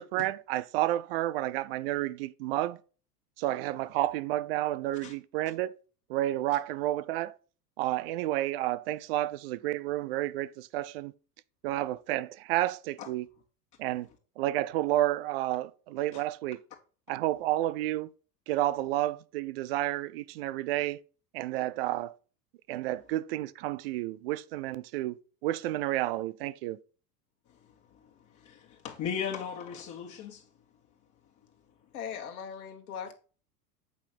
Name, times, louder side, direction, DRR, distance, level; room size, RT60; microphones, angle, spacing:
voice 1, 0.0-2.8 3.4-5.8 6.1-7.3 7.8-11.1 11.6-13.3 13.8-14.1 14.4-16.6 17.1-18.1 18.5-21.0 21.3-22.1 22.7-26.8, right 15 dB, 40° right, 0.5 m, -31 dB
voice 2, 28.4-30.4, left 7 dB, 35° left, 1.8 m, -37 dB
voice 3, 31.9-33.1, left 7 dB, 60° left, 1.5 m, -39 dB
8.6 x 5.7 x 4.4 m
figure-of-eight pair, 85°, 49 cm